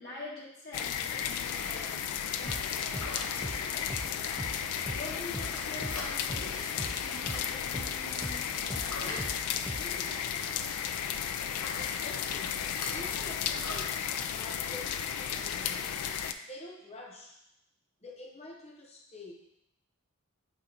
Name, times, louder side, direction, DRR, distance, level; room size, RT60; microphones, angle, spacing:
voice 1, 0.0-4.1 4.9-9.4 9.8-10.2, left 1 dB, 50° left, -6 dB, 1.7 m, -45 dB
sound 1, 0.7-16.3, left 8 dB, 85° left, 0.4 m, -34 dB
sound 2, 1.4-1.7 2.9-3.3 4.2-4.4 5.3-6.1 7.0-7.4 8.7-9.2 10.4-10.8 11.5-11.9 12.6-12.9 13.5-13.9, left 2 dB, 65° left, 1.1 m, -42 dB
sound 3, 2.5-10.1, equal, 5° right, 0.5 m, -41 dB
voice 2, 11.8-16.0 16.5-17.4 18.0-19.3, left 2 dB, 30° left, 0 dB, 1.0 m, -47 dB
8.3 x 3.0 x 3.9 m, 0.82 s
head